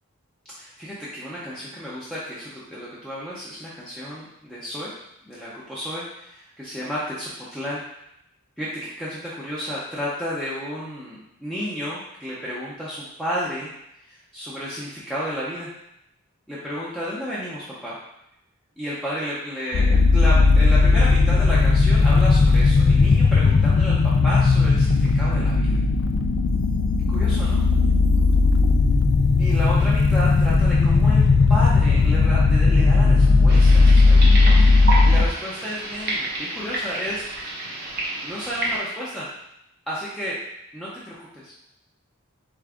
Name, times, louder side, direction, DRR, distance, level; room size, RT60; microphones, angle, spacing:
voice 1, 0.6-4.9 5.2-7.8 8.6-13.7 14.0-15.7 16.5-18.0 18.8-24.0 24.2-25.8 27.1-27.6 29.4-31.2 31.5-37.5 38.2-39.3 39.9-40.4 40.7-41.5, equal, 5° left, -9 dB, 0.7 m, -32 dB
sound 1, 19.7-35.3, left 3 dB, 55° left, 0.3 m, -16 dB
sound 2, 33.5-38.8, right 2 dB, 45° right, 0.9 m, -30 dB
3.8 x 3.7 x 3.5 m, 0.81 s
head